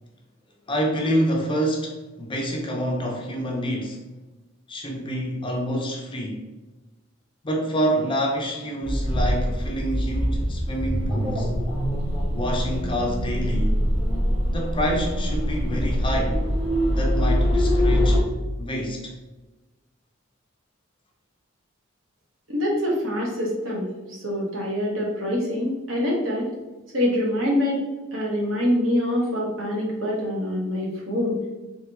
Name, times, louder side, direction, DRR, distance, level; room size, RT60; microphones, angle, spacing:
voice 1, 0.7-4.0 4.7-6.5 7.4-11.5 12.3-13.8 14.5-16.4 16.8-18.2 18.6-19.1, equal, 25° left, 0 dB, 0.6 m, -27 dB
sound 1, 8.8-18.2, equal, 10° right, 1.0 m, -23 dB
voice 2, 22.5-26.5 26.9-27.8 28.1-31.4, left 1 dB, 65° right, -3 dB, 1.2 m, -25 dB
3.4 x 3.4 x 3.0 m, 1.1 s
head